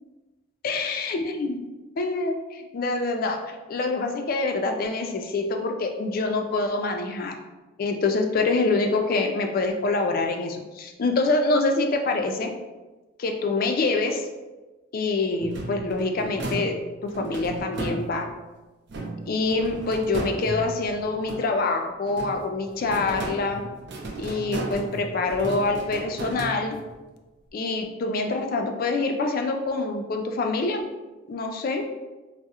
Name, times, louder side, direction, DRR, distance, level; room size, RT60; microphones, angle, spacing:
voice 1, 0.6-1.7 2.0-7.4 7.8-12.5 13.2-14.3 14.9-16.7 17.0-18.3 19.3-23.7 24.2-26.8 27.5-30.8 31.3-31.9, left 3 dB, 45° left, 4 dB, 0.3 m, -26 dB
sound 1, 15.4-18.4 18.9-21.7 22.1-27.0, right 2 dB, 55° right, 0.4 m, -35 dB
3.5 x 2.0 x 2.8 m, 1.2 s
head